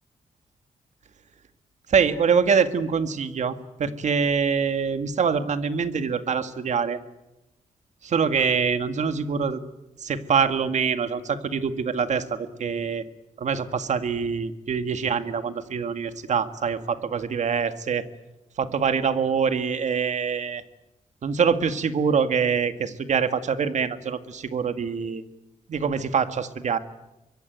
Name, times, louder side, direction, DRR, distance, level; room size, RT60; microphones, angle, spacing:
voice 1, 1.9-7.0 8.0-9.6 10.0-13.0 13.4-18.0 18.6-20.6 21.2-25.2 25.7-26.8, right 6 dB, 65° right, 10 dB, 1.8 m, -24 dB
25.0 x 22.0 x 9.4 m, 0.96 s
cardioid pair, 105°, 13 cm